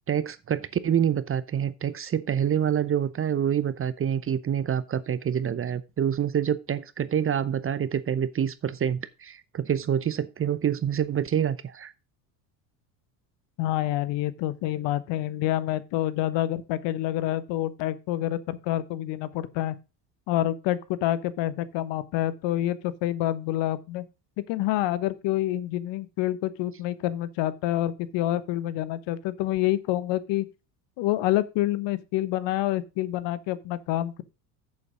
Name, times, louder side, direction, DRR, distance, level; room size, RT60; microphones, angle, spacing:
voice 1, 0.1-11.9, right 9 dB, 25° right, 0.7 m, -27 dB
voice 2, 13.6-19.8 20.3-24.0 24.4-30.5 31.0-34.2, left 14 dB, 60° left, 1.2 m, -27 dB
7.8 x 7.2 x 5.0 m
hypercardioid pair, 80°, 49 cm